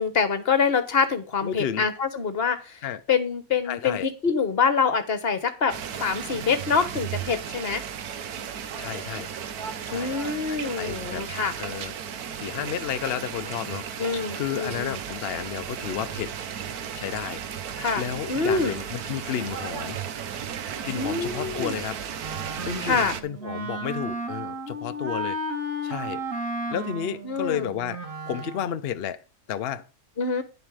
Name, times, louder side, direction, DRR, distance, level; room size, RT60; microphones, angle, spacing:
voice 1, 0.0-2.8 3.1-7.8 9.9-11.5 14.0-15.0 17.8-18.0 18.3-18.8 20.9-21.8 22.8-23.1 27.2-27.7 30.2-30.4, left 5 dB, 40° left, 1.3 m, -25 dB
voice 2, 1.4-1.9 2.8-3.0 3.6-4.1 8.8-9.3 9.9-10.2 10.5-11.3 11.6-12.2 12.4-16.3 16.9-17.4 17.7-20.0 20.8-22.0 22.7-25.4 25.8-28.0 28.3-29.2 29.5-29.9, left 9 dB, 65° left, 0.6 m, -32 dB
sound 1, 5.7-23.2, right 8 dB, 75° right, 1.4 m, -35 dB
Wind instrument woodwind instrument, 22.2-28.7, right 1 dB, 60° right, 1.9 m, -33 dB
10.5 x 7.3 x 4.8 m
omnidirectional pair, 1.6 m